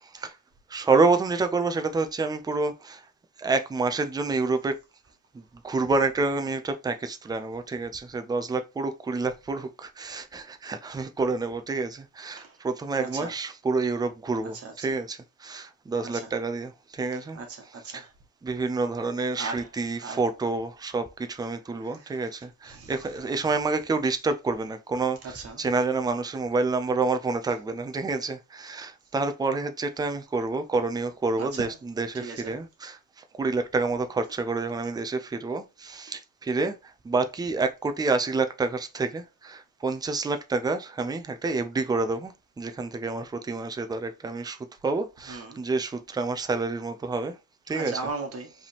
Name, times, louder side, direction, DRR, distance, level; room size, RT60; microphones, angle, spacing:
voice 1, 0.0-0.3 0.7-3.0 3.4-4.8 5.3-17.4 17.9-18.1 18.4-33.0 33.4-44.6 44.8-47.4 47.7-48.0, right 3 dB, 10° right, 0.5 m, -28 dB
voice 2, 13.0-13.3 14.5-15.0 16.0-16.3 17.1-18.1 19.3-19.7 20.0-20.2 21.8-23.0 25.2-25.6 31.4-31.8 32.1-32.6 45.3-45.6 47.7-48.5, right 4 dB, 40° right, 1.7 m, -38 dB
4.9 x 3.5 x 2.9 m
cardioid pair, 145°, 35 cm